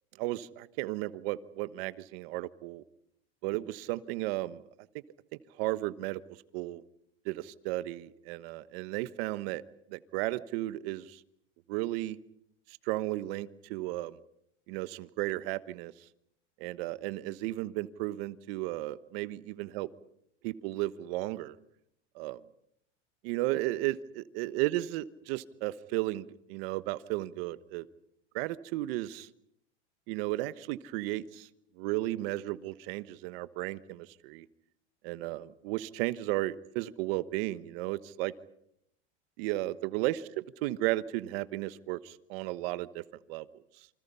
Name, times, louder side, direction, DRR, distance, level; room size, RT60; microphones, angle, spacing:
voice 1, 0.2-2.8 3.4-4.6 5.6-6.2 6.5-6.8 7.2-9.6 9.9-11.2 11.7-12.2 12.8-14.2 14.7-15.9 16.6-19.9 20.4-21.6 22.1-22.4 23.2-27.9 28.3-29.3 30.1-31.5 31.8-34.4 35.0-38.3 39.4-40.2 40.6-43.0 43.3-43.5, right 17 dB, 55° right, 15 dB, 1.2 m, -34 dB
28.5 x 25.5 x 5.6 m, 0.76 s
supercardioid pair, 145°, 35 cm